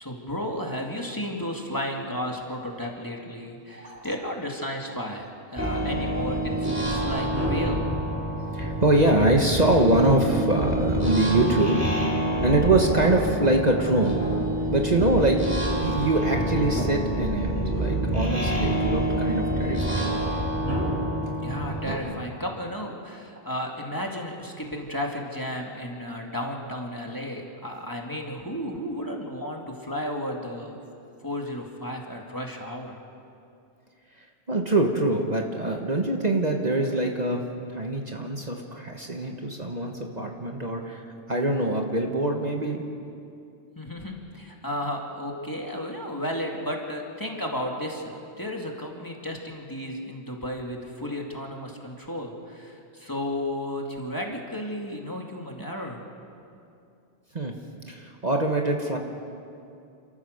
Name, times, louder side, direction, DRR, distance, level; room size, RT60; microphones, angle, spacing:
voice 1, 0.0-5.3 5.5-7.9 21.4-30.8 31.2-33.0 43.8-56.0, equal, 20° left, 0 dB, 2.2 m, -33 dB
voice 2, 3.7-4.1 8.5-11.8 12.4-14.2 14.7-15.4 15.8-19.9 34.5-37.4 37.7-42.8 57.3-57.5 57.9-59.0, right 2 dB, 40° right, 2 dB, 1.5 m, -24 dB
sound 1, 5.6-21.9, right 1 dB, 15° right, 4.4 m, -27 dB
29.5 x 14.0 x 6.6 m, 2.6 s
omnidirectional pair, 1.1 m